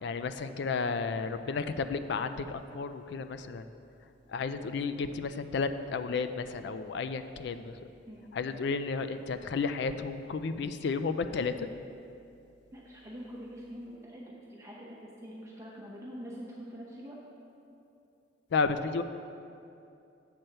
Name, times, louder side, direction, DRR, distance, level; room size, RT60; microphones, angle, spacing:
voice 1, 0.0-3.6 4.3-7.7 8.3-11.7 18.5-19.0, left 4 dB, 60° left, 10 dB, 0.4 m, -32 dB
voice 2, 12.7-17.2, equal, 15° right, -5 dB, 0.8 m, -45 dB
7.7 x 4.4 x 6.6 m, 2.6 s
head